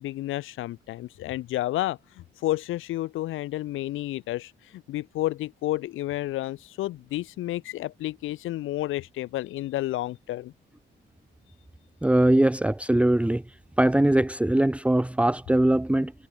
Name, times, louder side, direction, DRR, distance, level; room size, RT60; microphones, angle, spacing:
voice 1, 0.0-10.5, left 15 dB, 85° left, 2.0 m, -31 dB
voice 2, 12.0-13.4 13.8-16.1, right 1 dB, 5° right, 1.2 m, -21 dB
cardioid pair, 90°, 20 cm